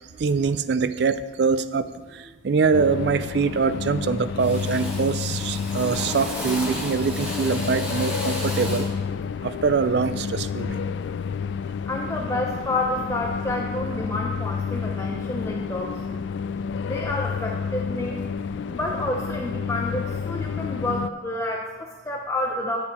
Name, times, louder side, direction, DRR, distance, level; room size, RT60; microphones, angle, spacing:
voice 1, 0.2-1.9 2.4-8.8 9.4-10.8, right 5 dB, 60° right, 14 dB, 0.4 m, -23 dB
Drill, 2.1-2.3 2.7-3.2 3.5-4.0 4.4-9.0, left 1 dB, 10° right, 1.8 m, -34 dB
sound 1, 2.7-21.1, left 6 dB, 70° left, 0.3 m, -30 dB
voice 2, 11.9-16.2 16.8-18.2 18.7-22.8, left 1 dB, 15° left, 0 dB, 0.6 m, -29 dB
9.9 x 6.4 x 5.0 m, 1.4 s
head